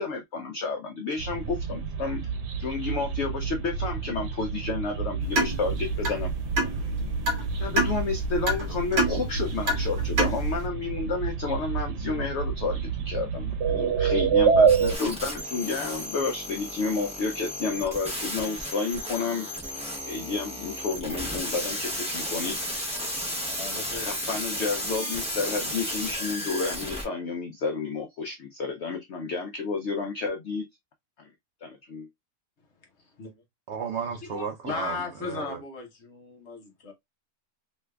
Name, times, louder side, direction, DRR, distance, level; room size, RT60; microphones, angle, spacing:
voice 1, 0.0-2.2 2.6-6.3 7.6-19.5 20.0-22.6 23.9-30.7 31.2-31.3 31.6-32.1, left 4 dB, 75° left, 0.6 m, -31 dB
sound 1, 1.2-15.0, right 6 dB, 90° right, 1.2 m, -28 dB
sound 2, 5.2-10.7, right 1 dB, 45° right, 1.1 m, -29 dB
sound 3, 14.7-27.0, equal, 10° right, 0.3 m, -34 dB
voice 2, 23.5-24.2 33.0-33.4 34.2-36.9, left 4 dB, 50° left, 1.0 m, -37 dB
voice 3, 33.7-35.6, right 6 dB, 75° right, 0.6 m, -34 dB
3.3 x 3.1 x 2.2 m
omnidirectional pair, 1.7 m